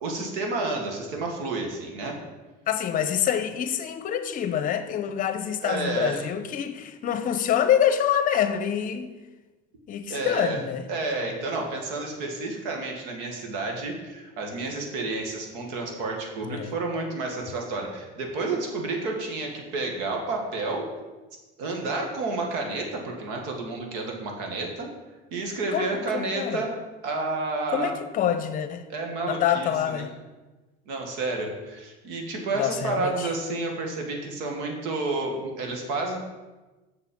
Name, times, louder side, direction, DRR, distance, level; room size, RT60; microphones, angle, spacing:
voice 1, 0.0-2.2 5.6-6.2 10.1-10.6 10.9-20.9 21.6-24.9 25.3-26.7 27.0-27.9 28.9-30.1 30.9-36.2, right 3 dB, 90° right, 2 dB, 1.9 m, -30 dB
voice 2, 2.7-9.1 9.9-10.9 16.4-16.7 25.7-26.6 27.7-28.9 29.3-30.1 32.6-33.3, left 9 dB, 40° left, 10 dB, 0.8 m, -26 dB
7.4 x 6.8 x 5.4 m, 1.2 s
cardioid pair, 130°, 21 cm